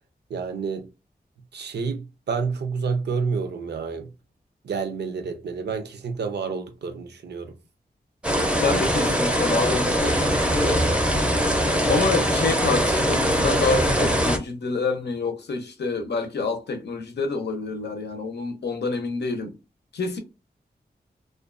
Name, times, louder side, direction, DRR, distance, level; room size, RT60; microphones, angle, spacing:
voice 1, 0.3-0.9 1.5-4.1 4.6-7.5, right 5 dB, 85° right, 0.5 m, -29 dB
sound 1, 8.2-14.4, equal, 5° right, 0.5 m, -22 dB
voice 2, 8.6-10.9 11.8-19.6 19.9-20.2, left 4 dB, 90° left, 0.6 m, -27 dB
2.4 x 2.2 x 2.4 m
wide cardioid pair, 85°, 17 cm